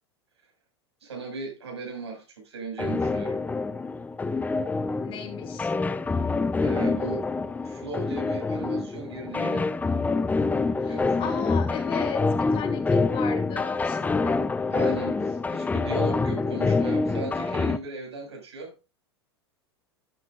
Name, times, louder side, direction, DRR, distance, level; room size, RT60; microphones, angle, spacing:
voice 1, 1.0-3.4 6.6-7.3 7.6-9.7 10.8-11.4 14.7-18.8, right 3 dB, 75° right, 6.4 m, -37 dB
sound 1, 2.8-17.8, left 3 dB, 10° left, 0.7 m, -26 dB
voice 2, 5.0-5.7 10.8-14.4, left 7 dB, 40° left, 3.1 m, -35 dB
12.5 x 9.4 x 2.7 m
figure-of-eight pair, 85°, 14 cm